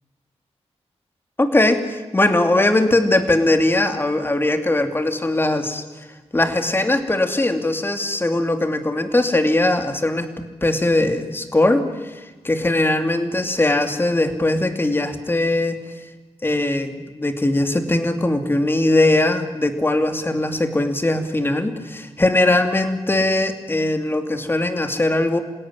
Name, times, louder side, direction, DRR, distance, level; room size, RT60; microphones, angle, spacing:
voice 1, 1.4-5.8 6.3-10.3 10.6-12.1 12.4-15.8 16.4-25.4, left 2 dB, 20° left, 7 dB, 2.8 m, -20 dB
27.5 x 17.5 x 9.8 m, 1.3 s
wide cardioid pair, 100°, 11 cm